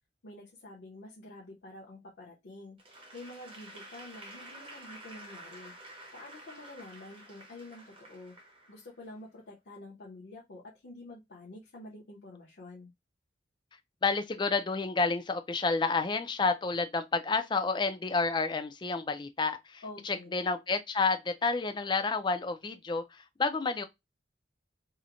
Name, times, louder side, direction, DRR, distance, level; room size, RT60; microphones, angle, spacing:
voice 1, 0.2-2.8 3.1-5.7 6.1-8.3 8.7-12.9 19.8-20.4, left 2 dB, 60° left, 0.7 m, -48 dB
Applause / Crowd, 2.8-9.2, right 1 dB, 30° right, 0.8 m, -50 dB
voice 2, 14.0-23.8, left 4 dB, 25° left, 0.4 m, -30 dB
2.9 x 2.1 x 2.4 m
head